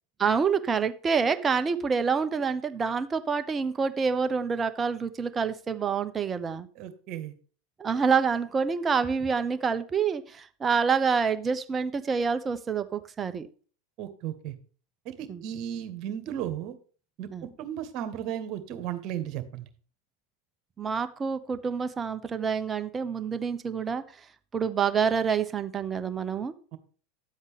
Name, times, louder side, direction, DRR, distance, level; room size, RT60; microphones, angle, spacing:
voice 1, 0.2-6.7 7.8-13.5 15.3-15.4 17.3-17.4 20.8-24.0 24.5-26.5, right 6 dB, 25° right, 10 dB, 1.1 m, -27 dB
voice 2, 6.8-7.3 14.0-14.6 15.1-16.8 17.2-19.7 26.7-26.8, right 10 dB, 45° right, 9 dB, 1.9 m, -35 dB
11.5 x 8.0 x 3.5 m, 0.40 s
hypercardioid pair, 90°, 0 cm